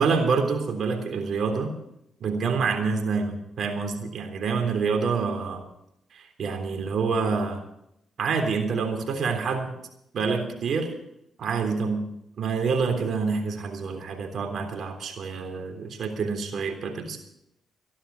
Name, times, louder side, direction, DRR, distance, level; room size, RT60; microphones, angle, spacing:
voice 1, 0.0-1.7 2.2-5.6 6.1-7.6 8.2-9.7 10.1-10.9 11.4-12.0 12.4-17.2, right 5 dB, 65° right, 4 dB, 3.5 m, -27 dB
14.5 x 11.5 x 7.1 m, 0.79 s
supercardioid pair, 55°, 0 cm